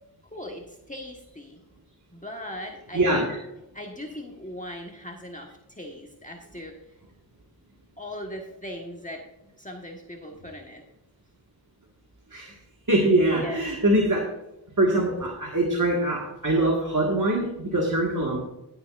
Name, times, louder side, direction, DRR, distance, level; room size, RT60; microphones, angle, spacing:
voice 1, 0.3-1.6 2.1-3.3 3.7-6.8 8.0-9.2 9.6-10.8 13.3-13.7, left 1 dB, 20° left, 0 dB, 1.4 m, -39 dB
voice 2, 2.9-3.4 12.3-12.6 12.9-14.3 14.8-18.4, right 1 dB, 50° right, -1 dB, 1.8 m, -23 dB
18.0 x 7.0 x 2.5 m, 0.92 s
wide cardioid pair, 40°, 41 cm